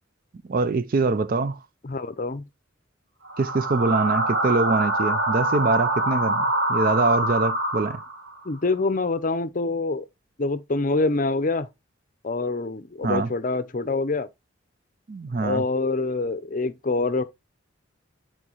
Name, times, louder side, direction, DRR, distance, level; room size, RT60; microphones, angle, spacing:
voice 1, 0.5-1.6 3.4-8.0 13.0-13.3 15.1-15.6, right 3 dB, 45° right, 0.4 m, -24 dB
voice 2, 1.8-2.4 8.4-10.1 10.4-11.7 12.2-14.3 15.4-17.2, left 3 dB, 40° left, 0.6 m, -25 dB
sound 1, 3.3-8.3, right 1 dB, 60° right, 1.8 m, -25 dB
8.5 x 4.4 x 3.0 m
head